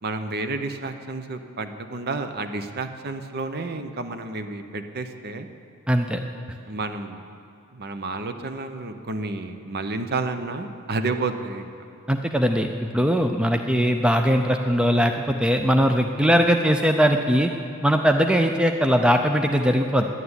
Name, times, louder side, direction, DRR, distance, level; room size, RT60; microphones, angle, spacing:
voice 1, 0.0-5.5 6.6-7.2 7.7-11.7, right 3 dB, 45° right, 8 dB, 0.8 m, -30 dB
voice 2, 5.9-6.2 12.1-17.5 17.8-20.0, equal, 5° right, 4 dB, 0.4 m, -20 dB
11.0 x 9.2 x 9.7 m, 2.5 s
head